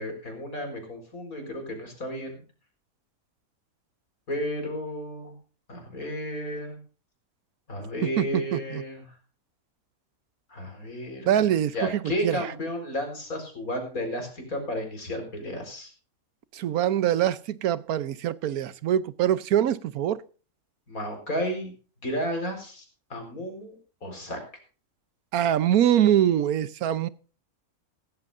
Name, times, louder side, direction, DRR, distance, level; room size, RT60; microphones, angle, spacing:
voice 1, 0.0-2.4 4.3-5.3 5.7-6.8 7.7-9.0 10.5-11.4 11.7-15.9 20.9-21.7 22.0-24.4, equal, 75° left, 4.9 m, -33 dB
voice 2, 8.5-8.8 11.3-12.5 16.5-20.2 25.3-27.1, right 10 dB, 85° right, 1.3 m, -24 dB
17.0 x 15.0 x 2.6 m
omnidirectional pair, 1.5 m